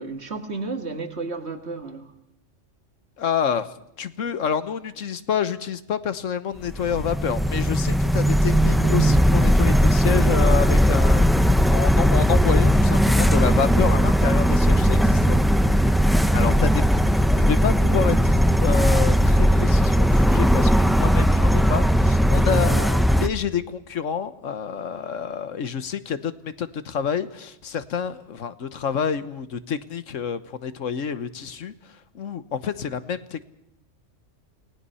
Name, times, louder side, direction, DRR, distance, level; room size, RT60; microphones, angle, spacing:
voice 1, 0.0-2.1 16.5-16.6 22.6-22.9, right 4 dB, 60° right, 6 dB, 2.2 m, -33 dB
voice 2, 3.2-11.2 11.7-15.4 16.3-31.7 32.1-33.4, left 7 dB, 80° left, 13 dB, 1.4 m, -28 dB
sound 1, 6.7-23.3, equal, ahead, 0.6 m, -18 dB
28.5 x 19.0 x 5.6 m, 0.80 s
omnidirectional pair, 1.3 m